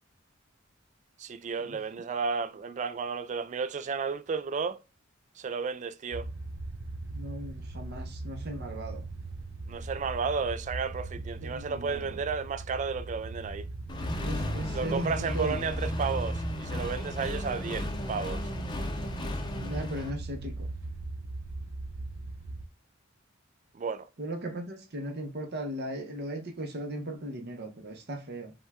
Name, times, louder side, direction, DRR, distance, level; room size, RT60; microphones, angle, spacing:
voice 1, 1.2-4.8 5.4-6.3 9.7-13.7 14.7-18.5 23.7-24.1, right 5 dB, 35° right, 0.3 m, -33 dB
sound 1, 6.1-22.7, right 2 dB, 85° right, 0.6 m, -40 dB
voice 2, 7.1-9.0 11.4-12.2 14.2-15.8 19.6-20.7 24.2-28.5, right 1 dB, 55° right, 0.8 m, -37 dB
Accelerating revving vroom, 13.9-20.1, left 1 dB, 20° left, 0.6 m, -34 dB
5.2 x 2.3 x 3.4 m
head